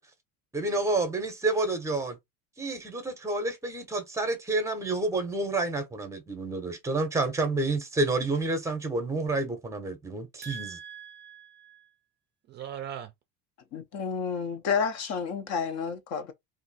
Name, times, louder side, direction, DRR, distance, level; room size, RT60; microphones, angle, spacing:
voice 1, 0.5-2.2 2.6-10.8, right 2 dB, 10° right, 0.7 m, -29 dB
voice 2, 10.4-11.9 12.5-13.1, right 9 dB, 30° right, 0.4 m, -41 dB
voice 3, 13.7-16.3, left 6 dB, 45° left, 0.6 m, -30 dB
2.7 x 2.6 x 4.0 m
cardioid pair, 160°, 35 cm